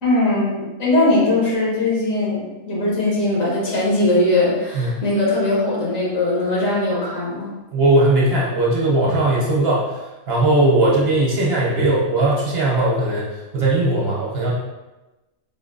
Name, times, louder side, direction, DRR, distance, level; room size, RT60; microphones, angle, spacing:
voice 1, 0.0-7.5, left 2 dB, 75° left, -6 dB, 1.7 m, -20 dB
voice 2, 7.7-9.9 10.3-13.3 13.5-14.5, right 2 dB, 55° right, -4 dB, 1.0 m, -18 dB
4.4 x 2.7 x 2.6 m, 1.1 s
omnidirectional pair, 1.4 m